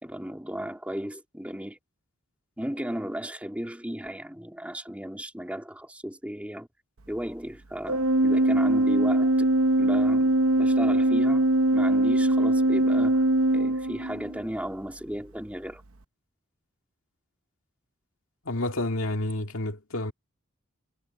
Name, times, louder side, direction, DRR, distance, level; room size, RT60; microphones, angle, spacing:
voice 1, 0.0-1.8 2.6-6.7 7.1-9.3 9.8-11.4 11.7-13.2 13.5-15.8, equal, 5° right, 3.3 m, -35 dB
Organ, 7.9-14.4, right 1 dB, 90° right, 1.0 m, -22 dB
voice 2, 18.5-20.1, left 1 dB, 85° left, 2.1 m, -29 dB
head